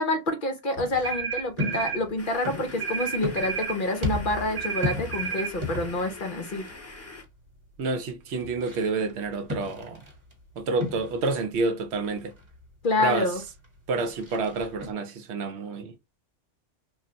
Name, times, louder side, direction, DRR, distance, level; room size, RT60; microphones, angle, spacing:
voice 1, 0.0-6.6 12.8-13.4, left 2 dB, 55° left, 0.7 m, -27 dB
sound 1, 0.7-14.9, left 2 dB, 25° right, 1.1 m, -37 dB
sound 2, 1.0-2.0 2.8-3.8 4.6-5.5, right 7 dB, 50° right, 0.5 m, -31 dB
Radio noise, 2.2-7.2, left 3 dB, 20° left, 0.4 m, -44 dB
voice 2, 7.8-10.0 10.6-12.3 13.0-13.3 13.9-15.9, right 3 dB, 70° right, 0.8 m, -28 dB
2.4 x 2.2 x 3.8 m
omnidirectional pair, 1.2 m